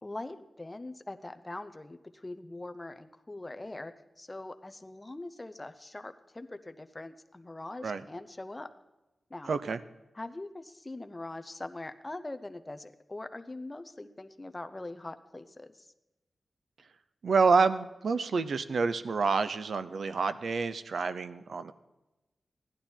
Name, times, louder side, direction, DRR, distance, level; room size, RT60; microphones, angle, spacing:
voice 1, 0.0-8.7 9.3-9.5 10.1-15.9, left 2 dB, 20° left, 9 dB, 0.6 m, -42 dB
voice 2, 9.5-9.8 17.2-21.7, right 4 dB, 75° right, 12 dB, 0.6 m, -28 dB
15.5 x 11.0 x 4.4 m, 1.0 s
wide cardioid pair, 150°, 0 cm